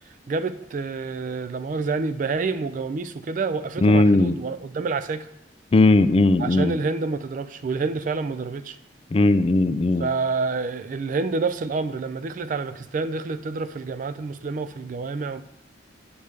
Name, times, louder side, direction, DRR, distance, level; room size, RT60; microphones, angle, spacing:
voice 1, 0.3-5.3 6.4-8.8 9.7-15.4, right 4 dB, 45° right, 0.3 m, -28 dB
voice 2, 3.8-4.4 5.7-6.8 9.1-10.1, left 2 dB, 30° left, 0.3 m, -18 dB
8.8 x 3.5 x 6.6 m
head